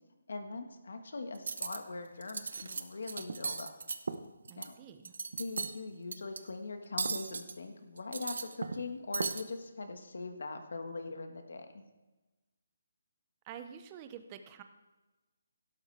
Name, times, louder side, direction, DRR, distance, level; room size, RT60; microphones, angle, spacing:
voice 1, 0.3-3.7 4.5-4.7 5.4-11.8, left 3 dB, 70° left, 6 dB, 1.6 m, -41 dB
Cutlery silverware, 1.3-1.8 2.2-2.8 3.1-4.7 5.0-5.7 6.1-6.4 7.0-7.5 8.0-8.8 9.1-9.4, right 4 dB, 60° right, 0.8 m, -36 dB
voice 2, 4.5-5.1 13.5-14.6, right 8 dB, 15° right, 8 dB, 0.5 m, -48 dB
12.0 x 12.0 x 3.4 m, 1.1 s
hypercardioid pair, 170°, 0 cm